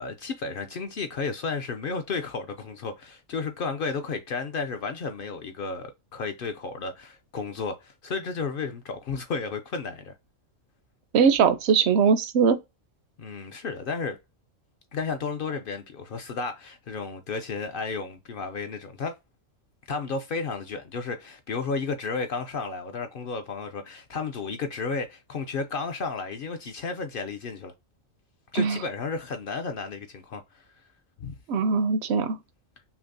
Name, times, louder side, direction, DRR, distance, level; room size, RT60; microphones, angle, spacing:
voice 1, 0.0-10.1 13.2-14.2 14.9-19.1 19.9-27.7 28.5-30.6 31.2-31.3, left 4 dB, 60° left, 0.6 m, -33 dB
voice 2, 11.1-12.6 28.6-28.8 31.5-32.4, right 6 dB, 65° right, 0.8 m, -21 dB
5.8 x 2.0 x 2.6 m
omnidirectional pair, 1.3 m